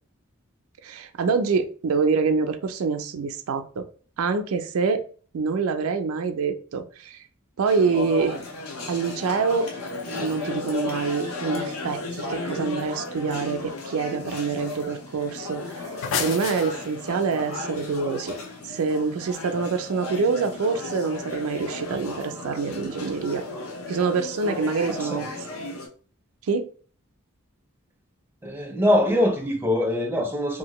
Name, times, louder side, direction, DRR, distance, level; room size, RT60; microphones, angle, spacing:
voice 1, 0.8-3.9 4.2-5.0 5.3-7.2 7.6-8.4 8.9-9.7 10.1-15.6 16.2-18.4 18.7-23.4 23.9-25.3 26.5-26.7, right 5 dB, 80° right, 0.4 m, -26 dB
sound 1, 7.7-25.9, left 3 dB, 85° left, 0.8 m, -35 dB
sound 2, 15.7-17.2, left 6 dB, 65° left, 0.4 m, -30 dB
voice 2, 28.4-30.6, left 1 dB, 10° right, 0.4 m, -23 dB
2.7 x 2.5 x 2.9 m
head